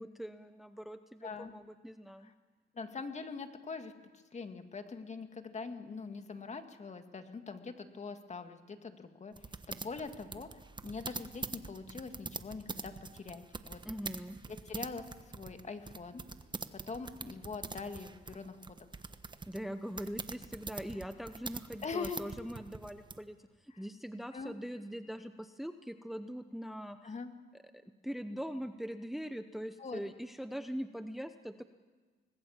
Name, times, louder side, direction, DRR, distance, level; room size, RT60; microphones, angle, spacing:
voice 1, 0.0-2.3 13.8-14.4 19.5-27.1 28.0-31.6, equal, ahead, 9 dB, 0.9 m, -42 dB
voice 2, 1.2-1.5 2.2-2.3 2.7-3.9 4.3-9.3 9.7-10.5 10.8-13.8 14.7-15.0 15.3-16.2 16.9-18.8 21.8-22.2 23.7-23.8 24.3-24.5 27.0-27.3 29.8-30.0, left 4 dB, 35° left, 7 dB, 2.2 m, -43 dB
sound 1, 9.4-23.2, right 4 dB, 25° right, 1.2 m, -44 dB
25.5 x 20.0 x 7.4 m, 1.4 s
cardioid pair, 90°, 20 cm